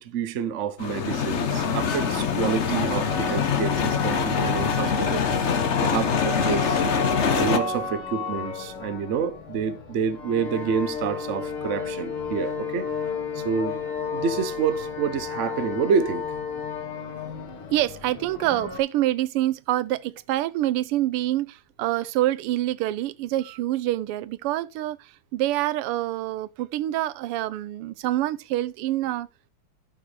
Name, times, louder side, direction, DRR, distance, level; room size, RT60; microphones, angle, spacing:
voice 1, 0.0-5.3 5.8-6.8 7.4-12.9 13.3-13.8 14.1-16.2, right 6 dB, 60° right, 0.8 m, -28 dB
sound 1, 0.8-7.6, left 7 dB, 55° left, 0.7 m, -24 dB
sound 2, 1.3-18.8, left 3 dB, 75° left, 2.5 m, -33 dB
voice 2, 17.7-29.3, right 14 dB, 85° right, 1.6 m, -26 dB
13.5 x 6.0 x 3.3 m
omnidirectional pair, 2.4 m